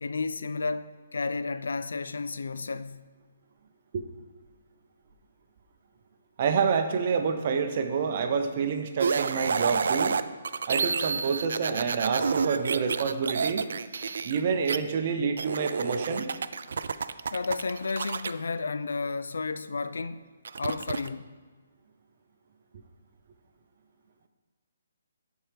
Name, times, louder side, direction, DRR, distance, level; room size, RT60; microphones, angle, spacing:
voice 1, 0.0-3.1 17.3-20.3 20.6-21.3, left 4 dB, 85° left, 0.4 m, -32 dB
voice 2, 6.4-10.2 10.7-13.6 14.2-16.3, right 6 dB, 40° right, 0.7 m, -28 dB
sound 1, 9.0-14.8 15.4-18.3 20.4-21.1, right 5 dB, 65° right, 0.3 m, -29 dB
12.5 x 4.5 x 3.4 m
hypercardioid pair, 165°, 0 cm